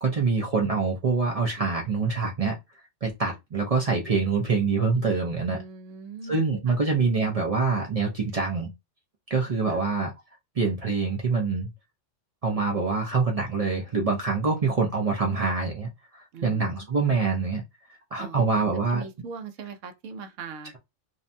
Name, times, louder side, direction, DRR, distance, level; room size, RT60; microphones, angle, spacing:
voice 1, 0.0-2.6 3.0-5.6 6.3-8.7 9.3-10.1 10.6-11.7 12.4-17.6 18.1-19.0, right 4 dB, 45° right, 0.4 m, -25 dB
voice 2, 5.5-6.4 9.7-9.8 16.3-16.9 18.2-20.7, right 5 dB, 80° right, 0.9 m, -40 dB
2.6 x 2.1 x 2.6 m
omnidirectional pair, 1.3 m